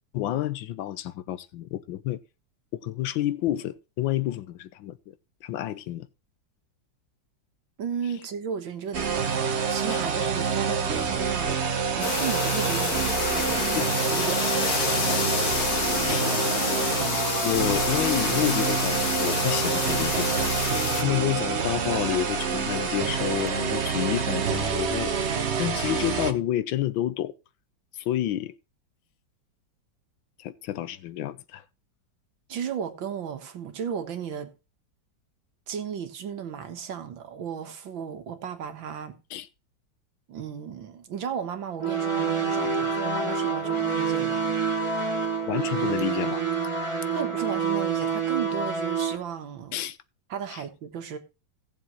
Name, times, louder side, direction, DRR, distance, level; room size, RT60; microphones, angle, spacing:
voice 1, 0.1-2.2 2.8-5.1 5.4-6.1 9.9-10.3 13.7-13.9 16.1-16.3 17.4-20.5 20.9-25.1 25.6-27.3 27.9-28.5 30.4-31.6 39.3-39.5 45.4-46.5 49.7-50.0 50.5-50.6, left 13 dB, 85° left, 1.5 m, -29 dB
voice 2, 7.8-11.6 12.0-13.8 14.1-14.7 32.5-34.5 35.7-39.2 40.3-44.6 47.1-49.8 50.3-51.2, right 7 dB, 85° right, 2.1 m, -35 dB
sound 1, 8.9-26.3, right 6 dB, 45° right, 1.1 m, -27 dB
sound 2, 12.0-21.0, left 5 dB, 55° left, 1.6 m, -28 dB
sound 3, 41.8-49.2, right 5 dB, 15° right, 1.4 m, -27 dB
17.0 x 7.1 x 3.0 m
omnidirectional pair, 2.1 m